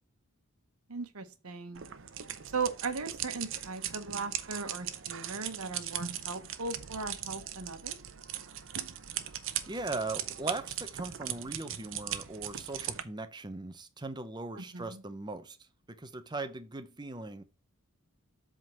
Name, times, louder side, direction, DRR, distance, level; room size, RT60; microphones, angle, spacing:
voice 1, 0.9-1.9 2.5-8.0 14.5-15.0, right 4 dB, 80° right, 1.1 m, -38 dB
sound 1, 1.7-13.0, right 10 dB, 60° right, 0.8 m, -39 dB
voice 2, 9.7-15.6 15.9-17.4, right 2 dB, 20° right, 0.7 m, -39 dB
7.9 x 3.8 x 5.7 m
head